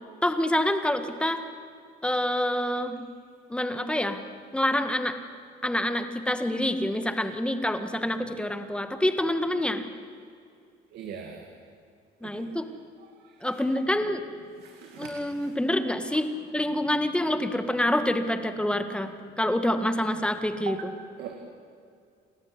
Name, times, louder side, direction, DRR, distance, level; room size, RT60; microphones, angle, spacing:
voice 1, 0.2-1.4 2.0-3.0 3.5-4.2 4.5-5.2 5.6-9.8 12.2-12.7 13.4-14.2 15.0-19.1 19.4-20.9, left 1 dB, 5° left, 8 dB, 1.8 m, -27 dB
voice 2, 10.9-11.4 12.3-12.4 13.5-13.6 14.6-15.1 15.4-15.5 20.7-20.8 21.2-21.4, right 8 dB, 75° right, 4 dB, 2.3 m, -39 dB
30.0 x 13.5 x 9.9 m, 2.2 s
cardioid pair, 110°, 17 cm